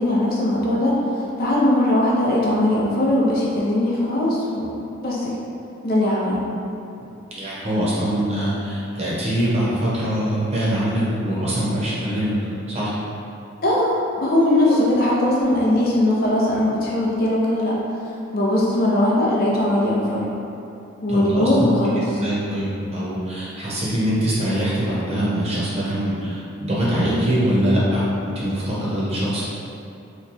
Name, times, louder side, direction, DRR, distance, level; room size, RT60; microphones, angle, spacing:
voice 1, 0.0-5.3 5.8-6.4 13.6-17.8 18.3-20.3 21.0-22.0, left 1 dB, 50° left, -5 dB, 0.6 m, -20 dB
voice 2, 7.4-13.0 14.7-14.8 21.1-21.7 22.2-29.4, equal, 30° right, -8 dB, 0.8 m, -23 dB
3.0 x 2.3 x 3.9 m, 2.7 s
head